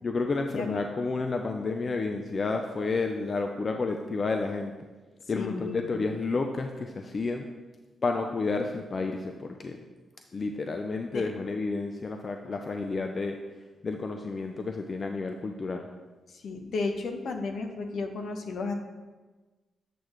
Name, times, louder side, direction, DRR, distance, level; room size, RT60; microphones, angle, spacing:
voice 1, 0.0-4.7 5.3-7.5 8.0-9.8 10.3-13.4 13.8-15.9, left 3 dB, 45° left, 4 dB, 0.5 m, -30 dB
voice 2, 5.3-6.1 11.1-11.3 16.4-18.7, left 3 dB, 70° left, 5 dB, 0.9 m, -33 dB
8.0 x 6.5 x 3.1 m, 1.3 s
supercardioid pair, 55°, 0 cm